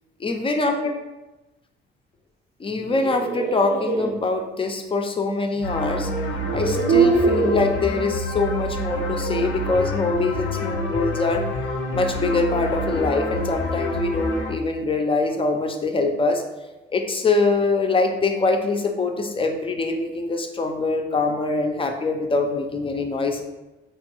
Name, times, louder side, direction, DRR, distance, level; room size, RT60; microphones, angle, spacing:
voice 1, 0.2-0.9 2.6-6.1 6.5-11.4 11.9-16.4 16.9-23.4, left 3 dB, 25° left, 4 dB, 0.4 m, -23 dB
sound 1, 2.8-4.1 5.6-5.7 6.3-7.7, right 4 dB, 50° right, 0.6 m, -22 dB
sound 2, 5.6-14.5, left 2 dB, 90° left, 0.5 m, -27 dB
4.5 x 2.2 x 2.9 m, 1.1 s
cardioid pair, 90°, 20 cm